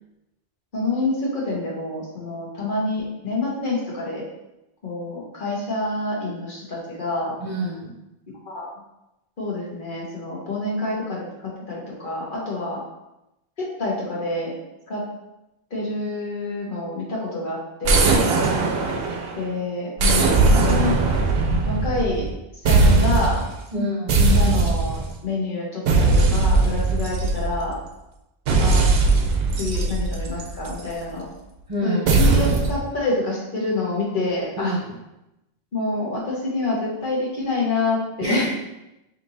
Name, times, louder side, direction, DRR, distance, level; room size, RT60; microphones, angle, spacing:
voice 1, 0.7-4.2 4.8-7.3 8.5-8.7 9.4-12.8 13.6-14.5 14.9-15.0 15.7-18.3 19.3-21.0 21.7-22.2 22.6-23.4 24.2-27.8 28.6-28.8 29.6-31.3 31.8-34.8 35.7-38.5, left 2 dB, 55° left, -5 dB, 1.2 m, -27 dB
voice 2, 7.4-7.9 18.0-18.3 18.5-18.7 23.7-24.2 31.7-32.1 34.6-34.8 38.2-38.5, equal, 40° right, -4 dB, 0.7 m, -27 dB
sound 1, 17.8-19.4 20.0-22.3 22.7-23.5 24.1-25.1 25.9-27.7 28.5-30.9 32.1-32.8, right 3 dB, 75° right, 0.8 m, -19 dB
5.2 x 2.8 x 2.6 m, 0.93 s
omnidirectional pair, 1.0 m